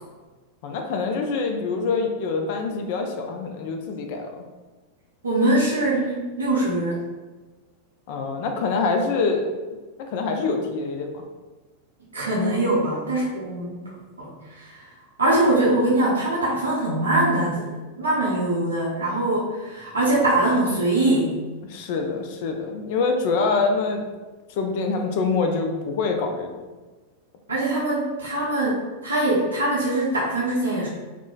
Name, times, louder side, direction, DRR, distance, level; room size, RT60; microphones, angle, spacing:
voice 1, 0.6-4.5 8.1-9.5 10.1-11.2 21.6-24.1 24.5-26.5, left 4 dB, 50° left, 4 dB, 0.4 m, -25 dB
voice 2, 5.2-7.0 12.1-14.9 15.2-21.3 27.5-30.9, right 1 dB, 75° right, -7 dB, 0.5 m, -23 dB
3.0 x 2.1 x 2.3 m, 1.3 s
figure-of-eight pair, 90°, 0 cm